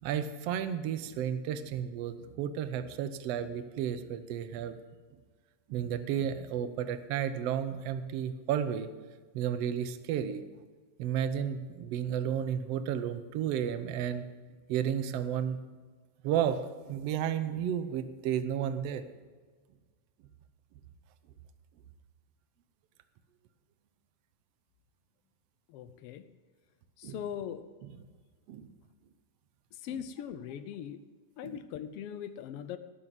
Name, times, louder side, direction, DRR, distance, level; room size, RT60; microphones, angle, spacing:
voice 1, 0.0-4.8 5.7-8.9 9.3-10.4 11.0-14.3 14.7-15.6 16.2-19.0 27.0-27.2 27.8-27.9 28.5-28.7 31.4-31.6, right 9 dB, 70° right, 11 dB, 1.7 m, -32 dB
voice 2, 25.7-26.3 27.0-27.6 29.7-31.0 31.4-32.8, left 9 dB, 75° left, 12 dB, 1.4 m, -40 dB
18.0 x 6.8 x 7.5 m, 1.4 s
omnidirectional pair, 3.3 m